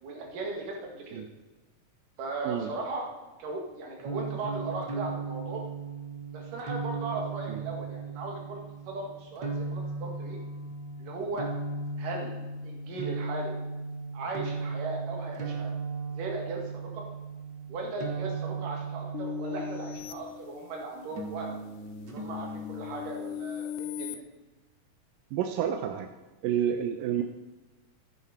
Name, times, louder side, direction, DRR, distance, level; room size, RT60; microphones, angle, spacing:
voice 1, 0.0-1.2 2.2-3.1 3.4-5.6 6.3-10.4 11.0-11.5 12.0-12.4 12.6-13.5 14.1-15.7 16.1-17.1 17.7-21.6 22.0-24.2, right 3 dB, 70° right, 0 dB, 3.6 m, -37 dB
sound 1, 4.0-20.3 21.1-23.1, right 4 dB, 55° right, 1.2 m, -37 dB
sound 2, 19.1-21.1 21.6-24.2, left 10 dB, 80° left, 2.1 m, -39 dB
voice 2, 25.3-26.1 26.4-27.2, right 9 dB, 90° right, 6 dB, 2.3 m, -29 dB
14.0 x 10.0 x 4.3 m, 1.1 s
omnidirectional pair, 3.9 m